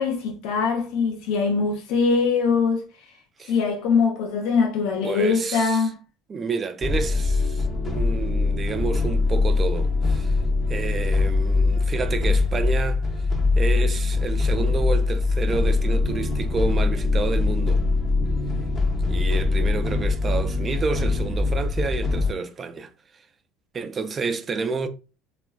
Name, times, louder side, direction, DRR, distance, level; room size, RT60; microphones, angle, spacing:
voice 1, 0.0-2.8 3.5-6.0, left 5 dB, 70° left, 0.6 m, -22 dB
voice 2, 5.0-5.9 6.3-10.4 10.7-13.0 13.6-17.8 19.1-22.9 23.7-24.9, right 4 dB, 30° right, 0.4 m, -29 dB
sound 1, 6.8-22.3, left 3 dB, 30° left, 0.6 m, -22 dB
3.0 x 2.4 x 2.2 m
supercardioid pair, 100°, 0 cm